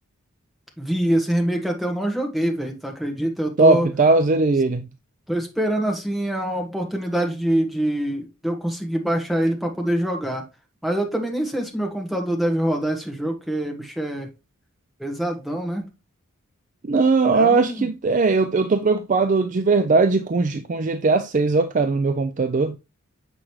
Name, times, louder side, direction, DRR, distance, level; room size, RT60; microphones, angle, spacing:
voice 1, 0.8-3.9 5.3-10.5 10.8-14.3 15.0-15.9 17.3-17.9, right 1 dB, ahead, 1.4 m, -25 dB
voice 2, 3.6-4.9 16.8-22.8, right 3 dB, 35° right, 0.4 m, -19 dB
7.3 x 5.1 x 3.1 m
head